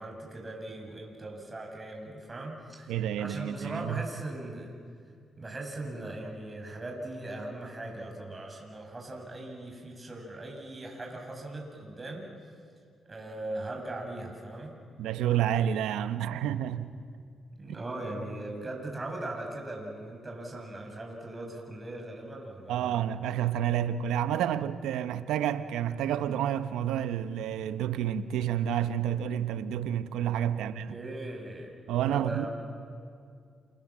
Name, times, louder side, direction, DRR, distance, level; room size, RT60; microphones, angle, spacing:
voice 1, 0.0-4.7 5.4-12.3 13.1-14.7 17.6-23.0 30.6-31.7 32.1-32.5, right 2 dB, 30° right, 7.3 m, -39 dB
voice 2, 2.9-4.0 15.0-16.9 22.7-31.0 31.9-32.4, right 10 dB, 90° right, 0.9 m, -29 dB
29.0 x 27.5 x 7.5 m
supercardioid pair, 60°, 0 cm